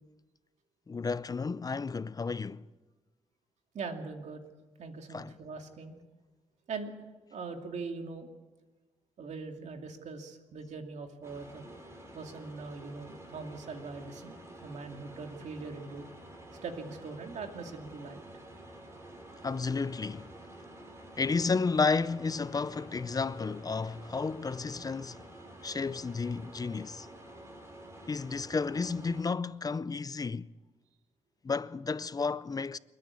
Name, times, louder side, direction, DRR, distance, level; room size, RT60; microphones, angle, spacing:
voice 1, 0.9-2.7 5.1-5.4 19.4-20.3 21.2-25.2 25.6-27.1 28.1-30.5 31.4-32.8, left 4 dB, 30° left, 0.6 m, -32 dB
voice 2, 3.7-4.4 4.8-5.9 6.7-6.9 7.3-8.3 9.2-11.7 12.1-16.1 16.6-18.2, right 4 dB, 75° right, 2.5 m, -41 dB
sound 1, 11.2-29.2, right 1 dB, 25° right, 5.4 m, -50 dB
28.5 x 9.7 x 9.6 m
cardioid pair, 75°, 12 cm